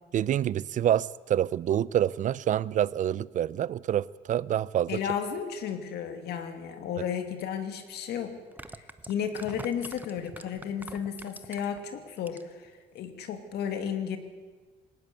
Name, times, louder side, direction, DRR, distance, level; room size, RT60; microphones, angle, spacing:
voice 1, 0.1-5.0, right 11 dB, 50° right, 21 dB, 0.6 m, -27 dB
voice 2, 4.9-8.4 9.0-14.2, left 8 dB, 75° left, 7 dB, 2.5 m, -33 dB
sound 1, 7.4-7.5 8.4-11.8 12.2-12.7 13.0-13.1, right 2 dB, 10° right, 1.0 m, -44 dB
19.5 x 18.5 x 8.2 m, 1.4 s
cardioid pair, 110°, 17 cm